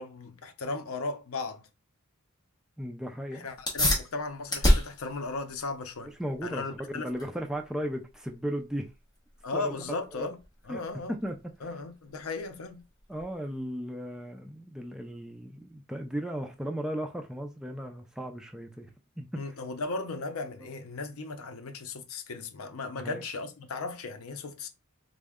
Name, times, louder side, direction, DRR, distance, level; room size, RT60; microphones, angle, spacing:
voice 1, 0.0-1.7 3.3-6.1 6.4-7.1 9.4-10.4 10.6-11.2 11.6-12.8 19.4-24.7, left 3 dB, 80° left, 0.6 m, -36 dB
voice 2, 2.8-3.5 6.0-6.6 6.9-8.9 9.5-9.7 10.1-10.3 10.7-10.8 11.1-11.5 13.1-18.9 19.2-19.4 22.9-23.2, equal, 5° right, 0.3 m, -36 dB
sound 1, 3.5-13.6, equal, 20° left, 1.0 m, -32 dB
3.6 x 2.1 x 3.5 m
head